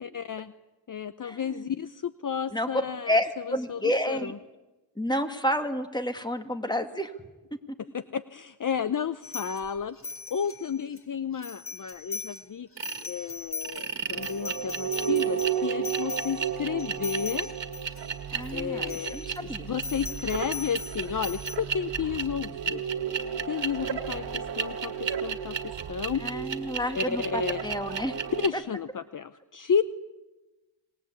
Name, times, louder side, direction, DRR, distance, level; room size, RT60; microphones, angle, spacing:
voice 1, 0.0-0.5 0.9-3.2 3.5-4.4 7.9-10.0 10.3-12.7 13.0-17.5 18.5-22.8 23.5-25.6 25.9-26.2 26.9-27.6 28.4-29.8, left 7 dB, 45° left, 13 dB, 0.8 m, -32 dB
voice 2, 1.2-1.7 2.5-2.7 3.1-4.3 5.0-7.1 7.5-7.6 18.3-19.7 26.2-28.2 28.5-28.6, equal, 10° left, 7 dB, 2.2 m, -30 dB
sound 1, 9.2-11.0 11.4-12.5 12.7-18.5 18.8-19.4 19.8-21.6, left 4 dB, 30° left, 2.8 m, -39 dB
sound 2, 12.8-13.1 13.6-28.5, right 7 dB, 65° right, 1.9 m, -32 dB
26.0 x 20.5 x 8.4 m, 1.1 s
cardioid pair, 80°, 46 cm